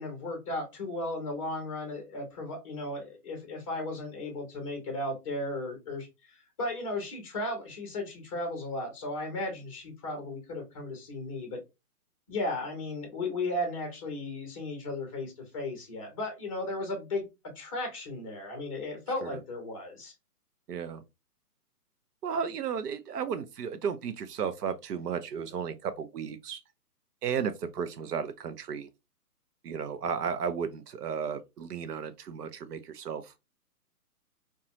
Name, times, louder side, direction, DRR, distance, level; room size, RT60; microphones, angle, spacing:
voice 1, 0.0-6.1 6.6-11.6 12.3-17.3 17.5-20.1, left 2 dB, 20° left, 0.8 m, -35 dB
voice 2, 20.7-21.0 22.2-26.6 27.2-28.9 29.6-33.3, right 7 dB, 80° right, 0.6 m, -34 dB
2.5 x 2.3 x 2.8 m
hypercardioid pair, 160°, 47 cm